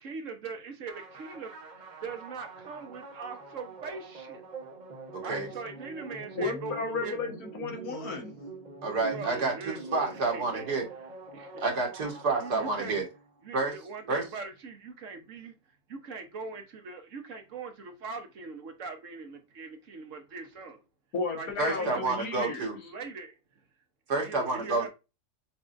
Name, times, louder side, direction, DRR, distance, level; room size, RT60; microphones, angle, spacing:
voice 1, 0.0-4.4 5.2-7.2 9.1-10.7 11.3-11.9 12.4-13.0 13.4-15.5 15.9-20.8 21.3-23.3 24.2-24.9, right 4 dB, 55° right, 1.2 m, -41 dB
sound 1, 0.9-13.4, right 3 dB, 35° right, 0.9 m, -45 dB
voice 2, 6.4-8.3 21.1-22.6, left 4 dB, 65° left, 1.7 m, -33 dB
voice 3, 8.8-10.8 11.6-13.0 13.5-13.7 14.1-14.2 21.6-22.8 24.1-24.9, right 3 dB, 80° right, 2.1 m, -29 dB
7.0 x 2.7 x 2.5 m
omnidirectional pair, 1.7 m